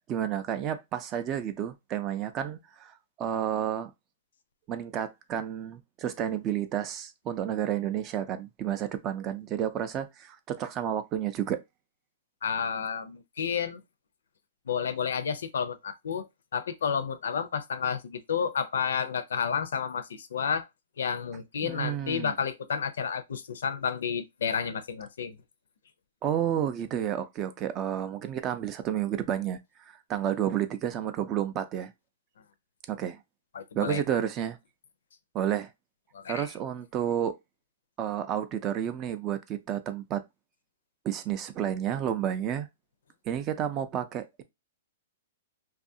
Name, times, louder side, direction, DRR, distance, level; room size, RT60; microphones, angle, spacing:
voice 1, 0.1-3.9 4.7-11.6 21.6-22.3 26.2-31.9 32.9-33.2 33.7-34.6 35.3-35.7 36.3-37.3 38.0-40.2 41.0-42.7 43.3-44.4, right 10 dB, 25° right, 0.3 m, -31 dB
voice 2, 12.4-13.8 14.7-16.3 16.5-20.7 21.0-25.4 33.5-34.2 36.1-36.5, left 7 dB, 80° left, 0.5 m, -31 dB
2.6 x 2.4 x 2.6 m
hypercardioid pair, 150°, 0 cm